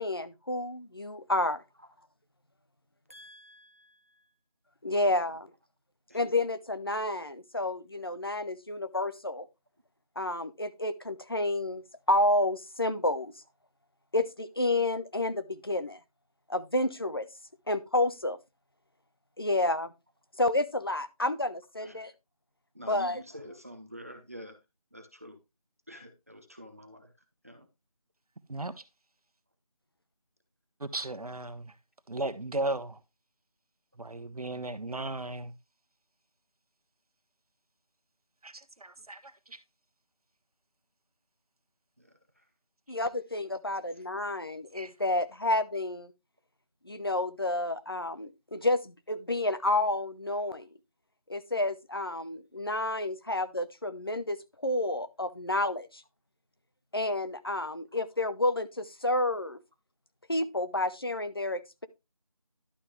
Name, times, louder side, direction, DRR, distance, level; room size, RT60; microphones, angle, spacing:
voice 1, 0.0-1.6 4.8-5.5 6.1-9.5 10.2-13.3 14.1-16.0 16.5-17.3 17.7-18.4 19.4-19.9 20.4-22.1 22.9-23.2 42.9-46.1 46.8-50.7 51.3-54.4 54.6-56.0 56.9-59.6 60.3-61.9, left 2 dB, 40° left, 0.7 m, -30 dB
voice 2, 3.1-4.3 5.3-5.4 6.1-6.3 21.8-22.0 22.7-24.6 24.9-25.4 25.9-27.1 27.4-27.7 39.0-39.1 42.0-42.5 44.0-44.2 57.9-58.0, equal, 25° right, 0.8 m, -48 dB
voice 3, 28.5-28.8 30.8-31.7 32.1-33.0 34.0-35.5 38.4-39.6 44.7-44.9, right 2 dB, 85° right, 1.1 m, -36 dB
11.5 x 5.7 x 3.1 m
figure-of-eight pair, 175°, 19 cm